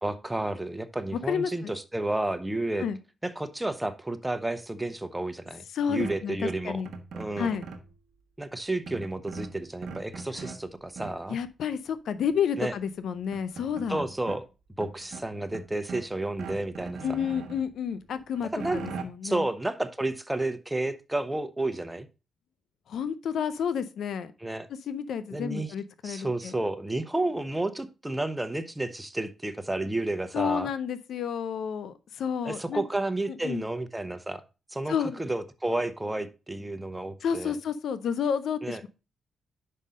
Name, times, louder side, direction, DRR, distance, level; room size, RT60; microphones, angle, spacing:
voice 1, 0.0-2.9 3.2-6.8 7.1-7.6 8.4-11.4 12.6-12.7 13.9-14.4 14.8-17.0 18.5-18.8 19.2-22.1 24.4-24.7 25.3-25.7 26.0-30.7 32.4-34.4 34.7-37.5 38.6-38.8, right 2 dB, 15° right, 0.9 m, -31 dB
voice 2, 1.1-1.7 2.8-3.0 5.7-6.9 7.4-7.7 10.3-10.5 11.3-14.1 17.0-19.5 22.9-24.3 24.9-26.5 30.3-32.8 33.3-33.7 34.9-35.2 37.2-38.9, left 7 dB, 75° left, 0.5 m, -30 dB
sound 1, 6.0-7.9 8.9-10.6 11.0-11.4 12.7-12.8 13.1-14.4 14.8-16.1 16.4-17.6 18.1-19.0, right 4 dB, 75° right, 1.1 m, -40 dB
5.5 x 5.3 x 5.0 m
supercardioid pair, 60°, 0 cm